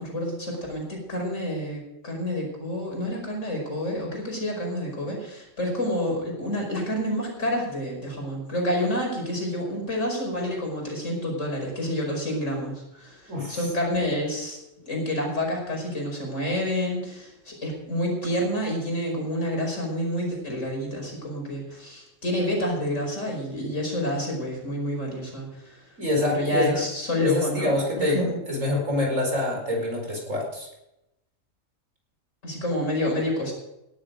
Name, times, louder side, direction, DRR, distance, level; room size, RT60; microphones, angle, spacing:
voice 1, 0.0-14.6 14.9-25.9 26.3-27.7 28.0-28.4 32.4-33.5, left 1 dB, 75° left, 0 dB, 5.5 m, -28 dB
voice 2, 13.3-13.7 26.0-26.7 27.2-30.7, left 1 dB, 85° right, 1 dB, 5.1 m, -26 dB
17.5 x 11.5 x 5.2 m, 0.88 s
omnidirectional pair, 1.3 m